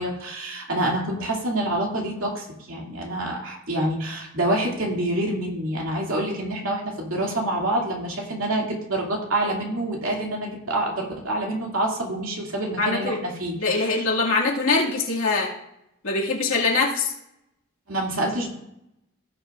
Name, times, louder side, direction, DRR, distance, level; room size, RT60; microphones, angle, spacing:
voice 1, 0.0-14.0 17.9-18.5, right 1 dB, 80° right, -1 dB, 2.5 m, -27 dB
voice 2, 12.8-13.2 13.6-15.5 16.0-17.1, left 3 dB, 80° left, -3 dB, 2.2 m, -23 dB
17.0 x 6.7 x 2.5 m, 0.82 s
head